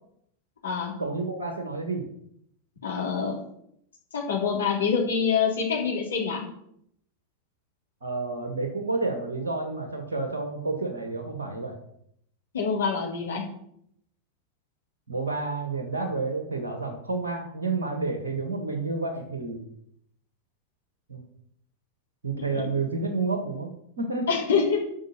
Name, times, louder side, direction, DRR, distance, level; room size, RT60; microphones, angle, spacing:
voice 1, 1.0-2.0 8.0-11.8 15.1-19.6 21.1-21.2 22.2-23.7 24.0-24.3, right 3 dB, 70° right, 4 dB, 1.7 m, -30 dB
voice 2, 2.8-3.4 4.1-6.4 12.5-13.4 22.5-22.7 24.3-24.8, left 6 dB, 65° left, -2 dB, 3.3 m, -26 dB
8.5 x 6.1 x 7.0 m, 0.71 s
figure-of-eight pair, 90°, 0 cm